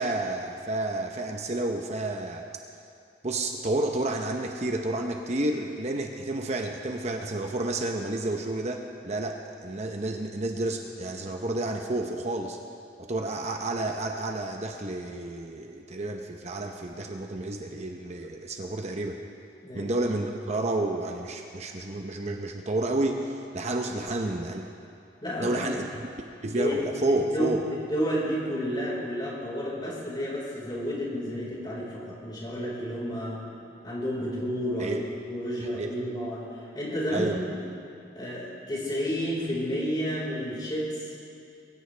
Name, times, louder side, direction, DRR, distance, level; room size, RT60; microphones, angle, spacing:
voice 1, 0.0-2.5 3.2-12.6 13.1-19.2 19.7-24.7 25.4-26.0 26.4-27.6 34.8-35.0 35.8-35.9 37.1-37.4, right 2 dB, 40° right, 3 dB, 0.9 m, -30 dB
voice 2, 25.2-25.6 26.5-26.7 27.1-27.5 27.9-33.4 33.8-36.5 36.7-37.6 38.1-41.1, equal, 25° left, -5 dB, 4.7 m, -31 dB
22.5 x 16.5 x 3.4 m, 2.6 s
head